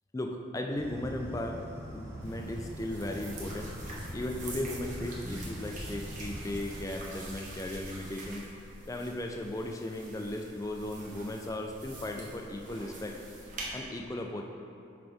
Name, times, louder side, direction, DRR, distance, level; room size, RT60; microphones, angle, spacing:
voice 1, 0.1-3.7 4.1-8.4 8.9-13.2 13.7-14.4, left 1 dB, 15° left, 2 dB, 0.4 m, -36 dB
sound 1, 0.8-6.7, equal, 15° right, 0.8 m, -43 dB
sound 2, 2.2-13.7, right 1 dB, 40° right, 1.0 m, -45 dB
6.1 x 5.0 x 3.5 m, 2.5 s
head